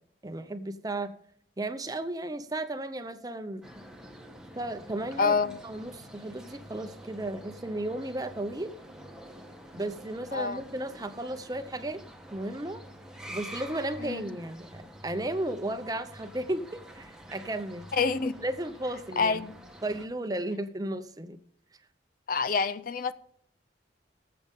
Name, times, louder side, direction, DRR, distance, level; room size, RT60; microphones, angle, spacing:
voice 1, 0.2-1.1 1.6-3.6 4.5-8.7 9.7-12.0 12.3-12.8 13.3-17.9 18.4-19.4 19.8-21.4, right 1 dB, 20° right, 0.7 m, -34 dB
sound 1, 3.6-20.1, equal, 5° right, 1.2 m, -47 dB
voice 2, 5.2-5.5 10.3-10.6 14.0-14.2 17.9-18.4 19.2-19.6 22.3-23.1, left 5 dB, 50° left, 0.5 m, -27 dB
18.5 x 7.8 x 3.6 m
head